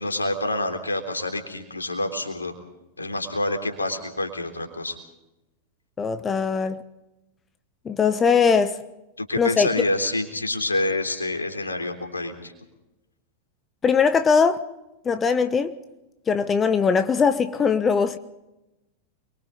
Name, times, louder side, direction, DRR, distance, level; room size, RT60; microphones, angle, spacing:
voice 1, 0.0-2.5 3.0-5.0 9.2-12.5, left 2 dB, 80° left, 3.5 m, -27 dB
voice 2, 6.0-6.8 7.8-8.8 9.4-9.8 13.8-14.6 15.0-15.7 16.3-18.2, left 5 dB, 20° left, 1.1 m, -20 dB
29.5 x 23.0 x 4.0 m
figure-of-eight pair, 90°, 0 cm